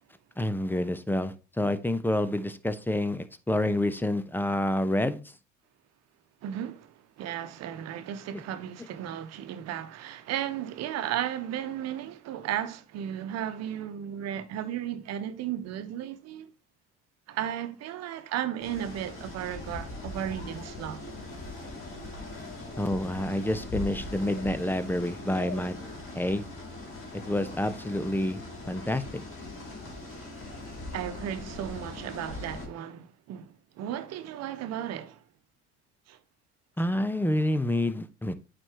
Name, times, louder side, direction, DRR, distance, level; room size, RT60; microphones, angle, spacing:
voice 1, 0.4-5.2 8.3-8.4 22.8-25.7 26.2-26.5 27.1-28.4 28.7-29.0 36.8-38.3, left 1 dB, 5° left, 0.8 m, -28 dB
voice 2, 6.4-16.5 17.3-21.0 30.9-35.2 36.1-36.2, right 10 dB, 55° right, 1.1 m, -35 dB
sound 1, 18.6-32.7, left 2 dB, 40° left, 3.7 m, -40 dB
8.9 x 4.4 x 3.0 m
hypercardioid pair, 65°, 31 cm